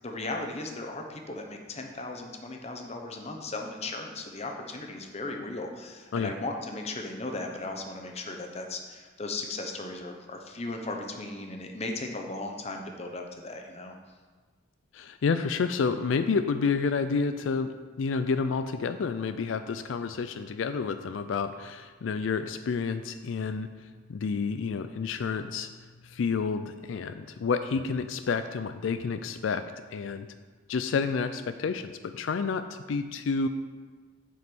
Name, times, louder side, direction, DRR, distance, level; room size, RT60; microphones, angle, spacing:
voice 1, 0.0-13.9, left 2 dB, 35° left, 3 dB, 0.9 m, -37 dB
voice 2, 14.9-17.7 18.0-25.7 26.0-29.6 29.9-30.3 30.7-33.5, left 5 dB, 80° left, 10 dB, 0.4 m, -29 dB
7.9 x 5.3 x 6.0 m, 1.4 s
head